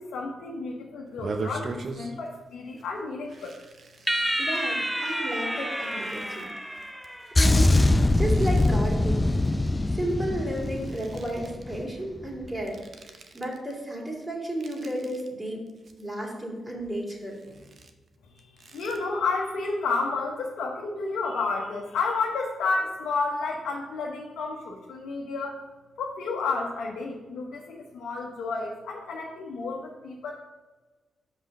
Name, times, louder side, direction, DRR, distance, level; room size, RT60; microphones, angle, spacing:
voice 1, 0.0-3.6 18.2-25.6 26.0-30.3, left 4 dB, 80° left, -2 dB, 0.8 m, -31 dB
sound 1, 1.1-2.4 2.7-2.9 3.3-4.8 5.4-10.1 10.4-11.7 12.5-13.7 14.1-15.3 15.7-16.4 16.8-19.0, right 3 dB, 60° right, 0.7 m, -41 dB
sound 2, 4.1-7.6, equal, 10° right, 0.7 m, -30 dB
voice 2, 4.4-6.5 7.3-7.7 8.1-9.3 9.9-12.8 13.3-15.6 16.0-17.6, right 1 dB, 25° right, -3 dB, 2.6 m, -32 dB
sound 3, 7.4-11.9 12.2-12.5, left 2 dB, 25° left, 0.4 m, -23 dB
5.5 x 5.0 x 5.9 m, 1.2 s
supercardioid pair, 45°, 0 cm